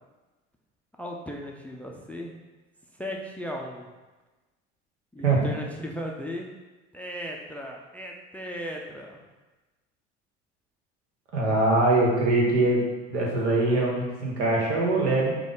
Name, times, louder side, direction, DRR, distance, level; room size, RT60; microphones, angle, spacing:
voice 1, 1.0-2.3 3.0-3.9 5.1-6.5 6.9-9.2, equal, 5° left, 0 dB, 0.4 m, -36 dB
voice 2, 5.2-5.6 11.3-12.8 13.1-15.3, right 2 dB, 75° right, -2 dB, 1.2 m, -22 dB
5.0 x 2.2 x 3.7 m, 1.2 s
figure-of-eight pair, 65°, 34 cm